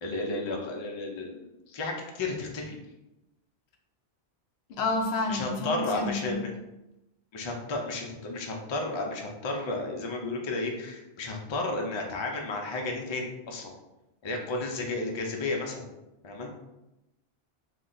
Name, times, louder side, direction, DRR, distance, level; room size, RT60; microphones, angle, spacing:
voice 1, 0.0-2.8 5.3-6.5 7.3-13.7 14.2-15.8 16.2-16.5, left 2 dB, 45° left, 1 dB, 0.3 m, -33 dB
voice 2, 4.7-6.4, left 3 dB, 80° left, 3 dB, 0.8 m, -30 dB
2.7 x 2.1 x 3.8 m, 0.95 s
omnidirectional pair, 1.1 m